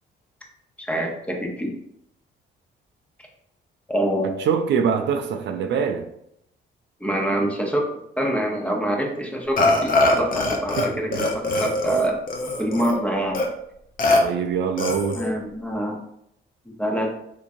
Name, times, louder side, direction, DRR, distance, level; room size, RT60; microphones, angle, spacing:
voice 1, 0.8-1.7 3.9-4.4 7.0-7.9 8.2-12.2 12.6-13.4 15.1-16.0 16.7-17.1, right 1 dB, 5° left, 1 dB, 0.8 m, -25 dB
voice 2, 4.4-6.1 10.8-11.3 14.1-15.2, right 7 dB, 65° right, 6 dB, 0.4 m, -24 dB
Burping eructation, 9.6-10.9 11.1-13.0 13.3-13.5 14.0-14.2 14.8-15.3, left 2 dB, 45° left, 0.7 m, -22 dB
3.5 x 2.9 x 2.6 m, 0.76 s
cardioid pair, 90°, 20 cm